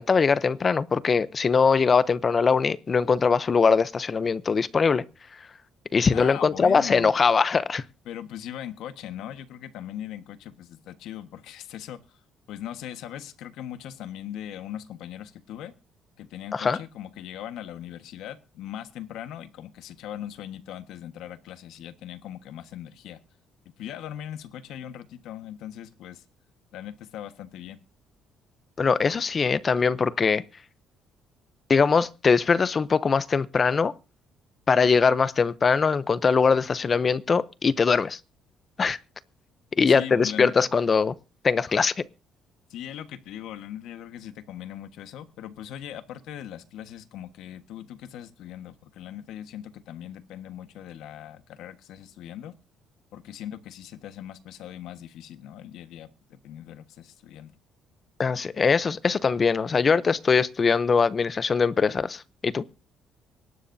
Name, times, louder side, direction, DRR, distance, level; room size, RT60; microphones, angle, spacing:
voice 1, 0.0-5.0 5.9-7.8 16.5-16.8 28.8-30.4 31.7-33.9 34.7-38.2 38.8-39.0 39.8-41.1 41.4-41.9 58.2-62.6, left 5 dB, 25° left, 0.6 m, -22 dB
voice 2, 6.1-7.1 8.0-12.2 12.5-15.7 16.2-23.2 23.8-26.2 26.7-27.8 39.9-40.7 42.7-52.5 53.1-57.5, left 11 dB, 75° left, 1.4 m, -40 dB
24.5 x 12.5 x 2.7 m
cardioid pair, 170°, 0 cm